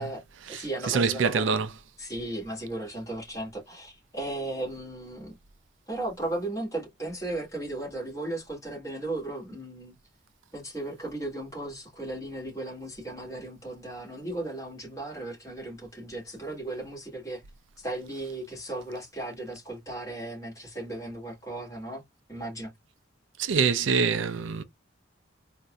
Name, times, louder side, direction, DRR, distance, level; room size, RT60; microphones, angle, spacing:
voice 1, 0.0-1.5 2.0-5.4 5.9-10.0 10.5-17.4 17.8-22.0 22.3-22.7, right 2 dB, 15° left, 1.9 m, -36 dB
voice 2, 0.5-1.7 23.4-24.6, right 5 dB, 75° right, 0.4 m, -25 dB
4.0 x 2.5 x 2.2 m
head